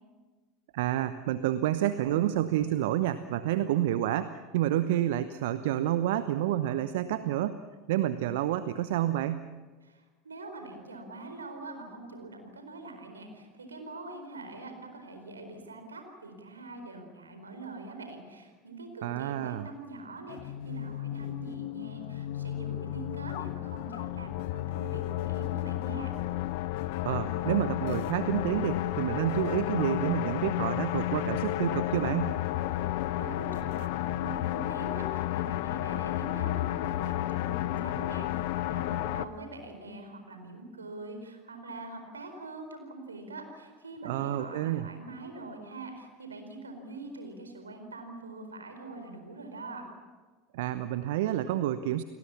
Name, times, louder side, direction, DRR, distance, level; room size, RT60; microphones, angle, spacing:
voice 1, 0.7-7.6 7.9-9.5 19.0-19.7 27.0-32.4 44.0-44.9 50.5-52.0, right 12 dB, 65° right, 13 dB, 0.9 m, -29 dB
voice 2, 9.8-26.1 32.7-49.9, right 2 dB, 85° right, 6 dB, 4.4 m, -44 dB
sound 1, 20.3-39.2, left 14 dB, 60° left, 0.9 m, -32 dB
29.5 x 19.5 x 7.2 m, 1.4 s
figure-of-eight pair, 75°, 0 cm